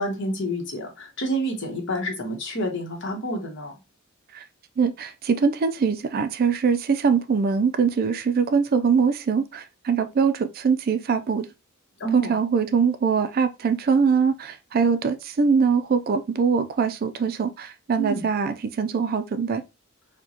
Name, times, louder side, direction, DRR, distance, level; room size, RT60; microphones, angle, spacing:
voice 1, 0.0-3.7 12.0-12.3 18.0-18.2, right 1 dB, 60° left, 1.1 m, -28 dB
voice 2, 4.8-11.5 12.1-19.6, right 5 dB, 45° right, 0.3 m, -22 dB
4.5 x 2.2 x 2.8 m
head